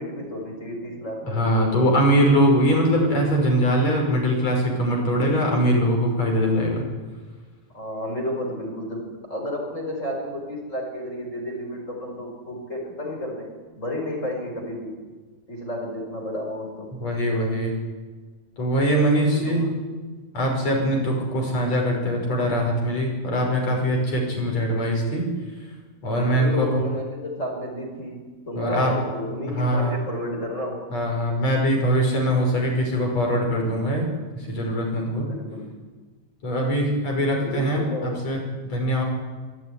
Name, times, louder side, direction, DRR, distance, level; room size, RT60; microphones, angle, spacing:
voice 1, 0.0-1.6 7.7-15.0 15.5-17.0 19.3-19.6 26.1-30.9 35.2-35.7 37.1-38.2, equal, 20° left, 1 dB, 5.0 m, -32 dB
voice 2, 1.3-6.8 17.0-17.7 18.6-19.7 20.3-25.3 26.0-26.7 28.6-29.0 29.5-30.0 30.9-35.3 36.4-39.0, equal, 45° left, 0 dB, 6.9 m, -22 dB
24.5 x 14.0 x 9.9 m, 1.4 s
omnidirectional pair, 4.1 m